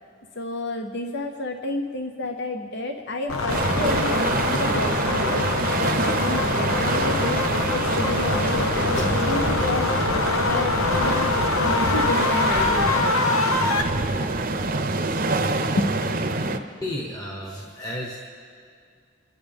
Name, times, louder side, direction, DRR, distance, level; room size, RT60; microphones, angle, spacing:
voice 1, 0.4-13.1 14.2-14.3 16.4-16.5, left 2 dB, 55° left, 4 dB, 0.8 m, -31 dB
sound 1, 3.3-13.8, left 3 dB, 80° left, 1.1 m, -24 dB
sound 2, 3.5-16.6, right 2 dB, 40° right, 0.8 m, -26 dB
sound 3, 8.9-9.7 10.2-10.3 10.8-11.7, equal, 35° left, 4.2 m, -39 dB
voice 2, 16.8-18.2, left 1 dB, 20° left, -2 dB, 1.3 m, -32 dB
28.5 x 11.0 x 3.5 m, 2.2 s
head